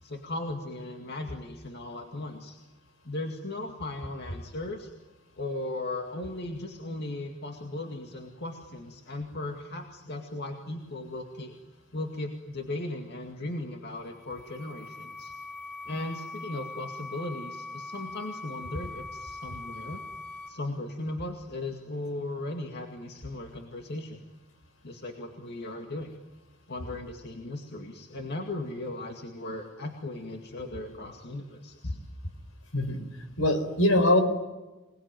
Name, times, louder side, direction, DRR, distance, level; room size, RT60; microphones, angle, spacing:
voice 1, 0.0-2.6 3.1-4.9 5.4-11.5 11.9-15.3 15.9-20.0 20.5-24.2 24.8-26.2 26.7-32.0, left 2 dB, 50° left, 3 dB, 2.2 m, -37 dB
sound 1, 14.0-20.5, left 3 dB, 10° left, 5.1 m, -42 dB
voice 2, 33.4-34.2, left 1 dB, 75° left, 8 dB, 4.8 m, -22 dB
27.0 x 20.0 x 9.2 m, 1.1 s
head